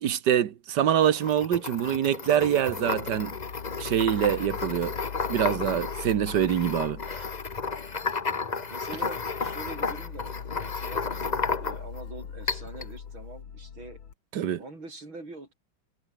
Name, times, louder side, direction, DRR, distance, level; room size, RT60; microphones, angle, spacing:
voice 1, 0.0-3.3 3.8-5.0 5.3-7.3 14.3-14.6, right 10 dB, 60° right, 1.7 m, -25 dB
sound 1, 1.0-12.0 12.5-12.9, left 4 dB, 30° left, 0.9 m, -33 dB
sound 2, 2.4-14.1, left 7 dB, 75° left, 2.8 m, -41 dB
voice 2, 8.7-14.0 14.6-15.5, right 2 dB, 75° right, 8.1 m, -44 dB
omnidirectional pair, 2.2 m